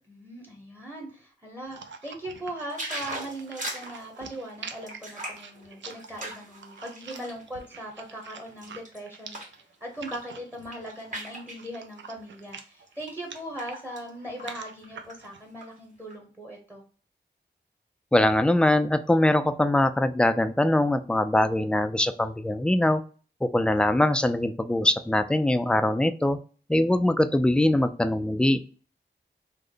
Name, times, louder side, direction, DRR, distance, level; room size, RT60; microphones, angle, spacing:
voice 1, 0.1-9.4 9.8-16.8, right 1 dB, 10° right, 1 dB, 0.9 m, -39 dB
sound 1, 1.6-15.4, right 6 dB, 90° right, 0.4 m, -46 dB
sound 2, 2.7-7.4 7.9-9.6 9.9-10.3 10.5-11.6 12.4-12.6 13.0-14.1 14.4-14.5 14.8-15.6 16.1-16.2, right 1 dB, 45° right, 1.6 m, -39 dB
voice 2, 18.1-23.0 23.4-26.4 26.7-28.6, left 1 dB, 5° left, 10 dB, 0.3 m, -22 dB
3.3 x 2.0 x 3.7 m, 0.39 s
wide cardioid pair, 75°, 18 cm